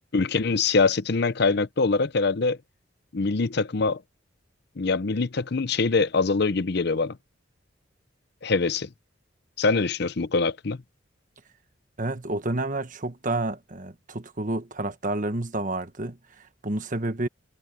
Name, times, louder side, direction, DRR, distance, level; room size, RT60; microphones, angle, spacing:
voice 1, 0.1-2.6 3.1-4.0 4.8-7.2 8.4-8.9 9.6-10.8, left 4 dB, 55° left, 0.7 m, -24 dB
voice 2, 12.0-17.3, right 2 dB, 40° right, 1.3 m, -30 dB
head